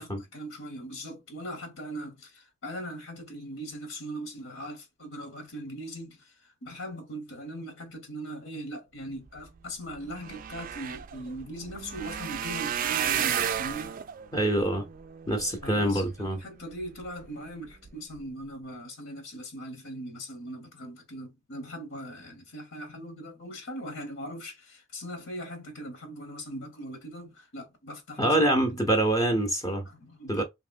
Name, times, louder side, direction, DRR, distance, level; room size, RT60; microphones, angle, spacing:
voice 1, 0.0-14.0 15.3-28.8 29.9-30.4, right 1 dB, 75° left, 1.1 m, -40 dB
sound 1, 9.6-9.7 9.9-16.3 16.8-17.3 17.7-17.9 18.2-18.3, right 9 dB, 45° right, 0.3 m, -33 dB
voice 2, 14.3-14.8 15.3-16.4 28.2-29.9 30.3-30.4, right 1 dB, 15° left, 0.6 m, -25 dB
3.0 x 2.8 x 2.5 m
head